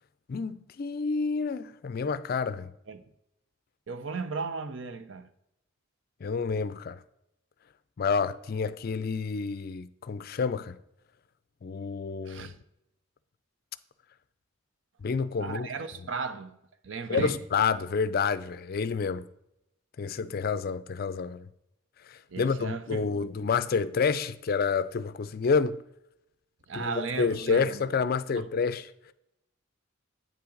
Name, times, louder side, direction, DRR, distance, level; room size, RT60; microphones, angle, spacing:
voice 1, 0.3-2.7 6.2-7.0 8.0-10.8 11.6-12.5 15.0-15.7 17.1-19.3 20.0-21.5 22.0-25.8 26.7-29.1, left 5 dB, 50° left, 0.4 m, -29 dB
voice 2, 3.9-5.3 12.3-12.6 15.4-16.6 16.8-17.4 22.3-23.3 26.7-27.8 28.3-28.4, right 4 dB, 65° right, 0.7 m, -35 dB
8.9 x 5.8 x 3.9 m
head